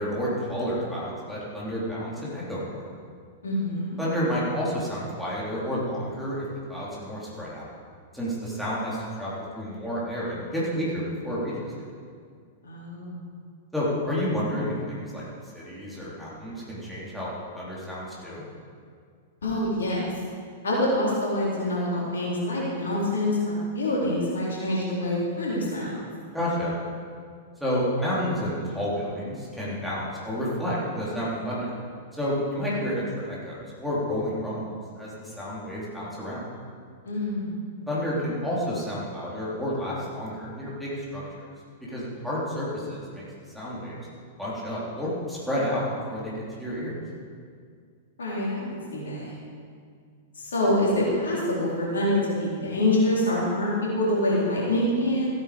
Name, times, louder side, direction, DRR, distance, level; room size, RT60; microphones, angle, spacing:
voice 1, 0.0-2.8 4.0-6.4 6.7-7.6 8.1-11.9 13.7-15.2 15.5-17.3 17.5-18.4 26.3-26.8 27.6-31.8 32.2-36.4 37.9-41.4 41.9-43.2 43.5-44.0 44.4-45.8 46.1-47.0, equal, ahead, -8 dB, 3.7 m, -30 dB
voice 2, 3.4-4.0 12.6-13.3 19.4-20.0 20.6-26.0 37.0-37.5 48.2-48.6 48.9-49.3 50.4-55.3, left 1 dB, 65° left, -5 dB, 3.9 m, -26 dB
15.0 x 9.0 x 5.2 m, 2.1 s
figure-of-eight pair, 100°, 0 cm